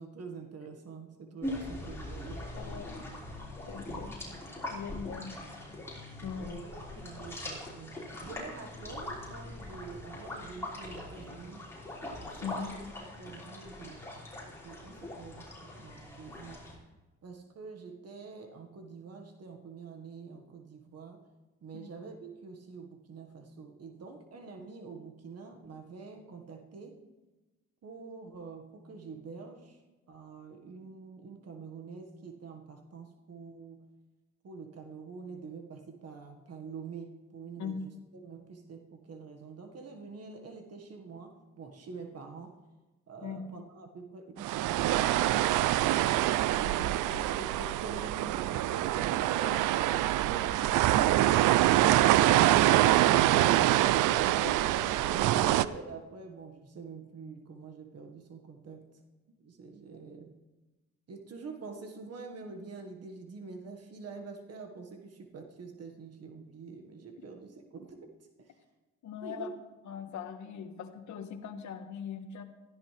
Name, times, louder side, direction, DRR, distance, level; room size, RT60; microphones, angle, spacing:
voice 1, 0.0-2.4 3.9-4.4 6.3-11.7 12.2-12.8 13.2-14.0 14.4-16.6 17.2-21.2 21.6-26.9 27.8-29.8 30.1-33.8 34.4-37.8 38.2-42.6 43.1-45.8 46.5-53.8 54.2-58.9 59.4-60.3 61.1-68.1 68.4-68.6 69.2-69.5, right 4 dB, 55° right, 4 dB, 1.7 m, -46 dB
sound 1, 1.4-16.8, left 1 dB, 10° left, 5.5 m, -42 dB
voice 2, 2.5-3.0 3.7-4.1 4.7-5.8 6.2-6.6 12.4-12.7 21.7-21.9 37.6-37.9 43.2-43.4 46.6-46.9 54.1-54.2 69.0-69.5 69.8-72.4, left 7 dB, 70° left, 7 dB, 1.4 m, -41 dB
sound 2, 44.4-55.7, right 14 dB, 85° right, 0.5 m, -25 dB
16.5 x 14.0 x 3.4 m, 1.1 s
cardioid pair, 90°, 30 cm